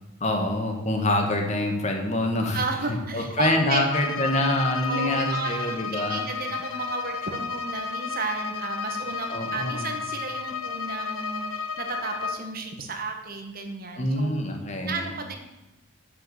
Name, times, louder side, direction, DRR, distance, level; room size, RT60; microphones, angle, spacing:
voice 1, 0.2-2.6 2.9-6.3 9.3-9.9 14.0-15.1, left 1 dB, 35° left, 3 dB, 1.9 m, -26 dB
voice 2, 2.5-3.8 4.9-14.4 14.9-15.4, right 3 dB, 45° right, 4 dB, 1.7 m, -33 dB
Bowed string instrument, 3.9-12.5, left 5 dB, 90° left, 1.1 m, -32 dB
9.6 x 6.7 x 8.3 m, 1.0 s
head